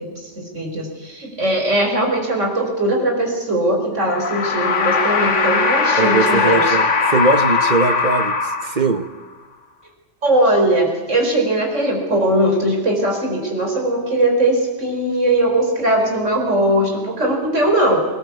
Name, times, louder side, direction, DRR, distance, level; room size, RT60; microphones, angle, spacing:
voice 1, 0.0-6.8 10.2-18.1, right 1 dB, 85° right, 2 dB, 5.0 m, -19 dB
sound 1, 4.0-9.1, left 4 dB, 85° left, 1.7 m, -19 dB
voice 2, 6.0-9.1, right 3 dB, 40° right, 11 dB, 1.2 m, -20 dB
20.5 x 19.0 x 8.3 m, 1.2 s
omnidirectional pair, 1.2 m